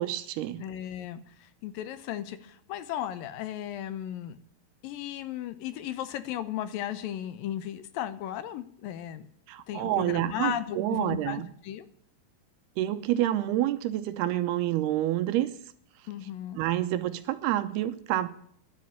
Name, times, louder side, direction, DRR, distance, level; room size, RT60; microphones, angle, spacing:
voice 1, 0.0-0.6 9.5-11.5 12.8-15.5 16.6-18.3, right 13 dB, 85° right, 12 dB, 2.8 m, -28 dB
voice 2, 0.6-4.4 4.8-9.3 9.7-11.9 16.1-16.6, left 11 dB, 75° left, 12 dB, 2.3 m, -35 dB
10.5 x 8.4 x 9.1 m, 0.63 s
omnidirectional pair, 4.7 m